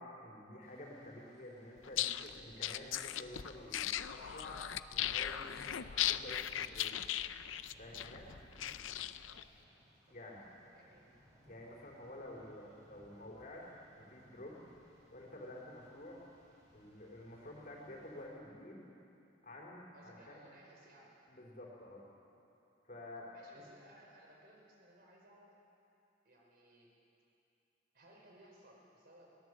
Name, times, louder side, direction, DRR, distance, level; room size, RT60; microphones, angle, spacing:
voice 1, 0.0-7.0 7.8-8.3 10.1-10.4 11.5-14.6 15.1-16.2 16.7-18.8 19.4-20.4 21.3-22.0 22.8-23.3 23.5-23.6, left 1 dB, 45° left, -2 dB, 4.1 m, -50 dB
Rain, 0.6-18.3, equal, 20° right, 5.4 m, -67 dB
sound 1, 1.8-9.4, left 11 dB, 85° left, 0.6 m, -38 dB
voice 2, 10.1-11.1 19.9-21.1 23.3-25.6 26.2-26.9 27.9-29.3, right 1 dB, 55° right, -1 dB, 4.9 m, -61 dB
22.0 x 18.0 x 8.0 m, 2.8 s
head